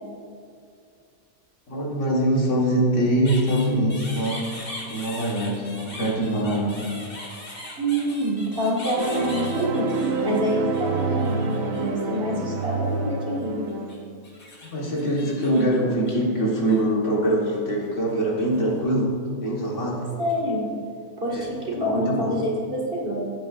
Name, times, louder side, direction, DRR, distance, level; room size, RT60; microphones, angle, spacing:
voice 1, 1.7-4.4 4.9-6.8 14.7-19.1 19.4-20.0 21.3-21.4 21.8-22.4, right 1 dB, 55° left, -3 dB, 1.9 m, -23 dB
sound 1, 3.2-11.8 12.1-13.1 13.7-16.8 17.2-18.1 18.4-18.7 19.6-20.3, left 1 dB, 40° left, 1.9 m, -40 dB
voice 2, 7.8-13.7 20.2-20.7 21.2-23.3, equal, 35° right, -3 dB, 2.0 m, -26 dB
sound 2, 9.0-13.9, right 4 dB, 65° right, 1.2 m, -27 dB
15.5 x 8.7 x 2.5 m, 2.4 s
omnidirectional pair, 1.6 m